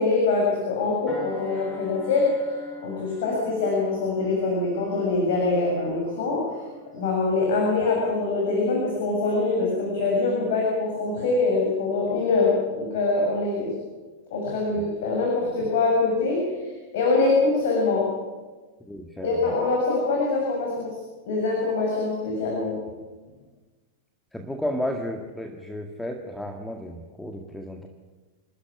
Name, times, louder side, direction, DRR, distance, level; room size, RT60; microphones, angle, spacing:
voice 1, 0.0-2.3 2.8-6.4 6.9-13.7 14.3-18.1 19.2-21.0 21.3-22.8, left 3 dB, 55° left, -2 dB, 7.1 m, -24 dB
sound 1, 1.1-9.9 10.4-10.6, left 1 dB, 20° left, 7.9 m, -45 dB
voice 2, 18.9-19.5 24.3-27.9, left 1 dB, 5° left, 4 dB, 2.0 m, -33 dB
28.0 x 13.5 x 9.9 m, 1.3 s
figure-of-eight pair, 90°, 0 cm